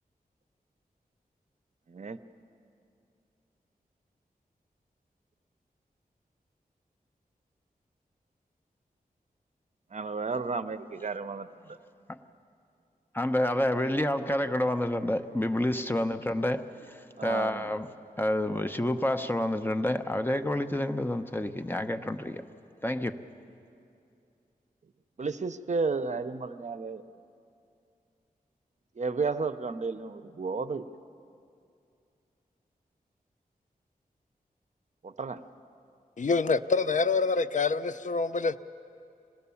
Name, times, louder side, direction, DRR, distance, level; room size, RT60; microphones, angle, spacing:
voice 1, 9.9-11.5 15.8-15.9 17.2-17.7 25.2-27.0 29.0-30.9 35.0-35.4, right 4 dB, 50° right, 0.7 m, -32 dB
voice 2, 13.1-17.9 18.2-22.4 22.8-23.2, left 1 dB, 15° left, 0.8 m, -29 dB
voice 3, 36.2-38.6, left 4 dB, 55° left, 0.5 m, -26 dB
26.0 x 19.0 x 7.1 m
wide cardioid pair, 85°, 15 cm